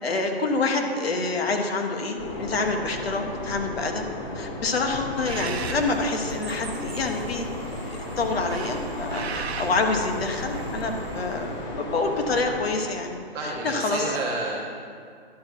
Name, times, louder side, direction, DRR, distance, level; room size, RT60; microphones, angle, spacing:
voice 1, 0.0-4.0 4.3-7.5 7.9-14.1, left 3 dB, 75° left, 3 dB, 1.3 m, -27 dB
sound 1, 2.2-12.7, left 1 dB, 30° left, 1.1 m, -34 dB
Bird, 5.1-11.6, right 5 dB, 90° right, 0.7 m, -38 dB
voice 2, 13.3-14.5, right 2 dB, 15° right, -3 dB, 0.7 m, -30 dB
11.0 x 5.9 x 4.5 m, 2.2 s
hypercardioid pair, 160°, 31 cm